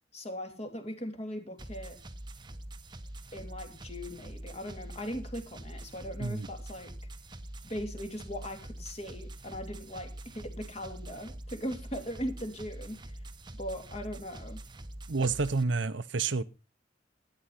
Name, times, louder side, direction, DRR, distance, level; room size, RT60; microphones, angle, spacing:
voice 1, 0.1-2.0 3.3-6.9 7.6-13.2 13.5-14.6, equal, 35° left, 2.8 m, -39 dB
sound 1, 1.6-15.6, right 1 dB, 25° right, 1.0 m, -45 dB
voice 2, 15.1-16.4, right 4 dB, 80° right, 0.8 m, -29 dB
13.0 x 10.0 x 5.7 m
head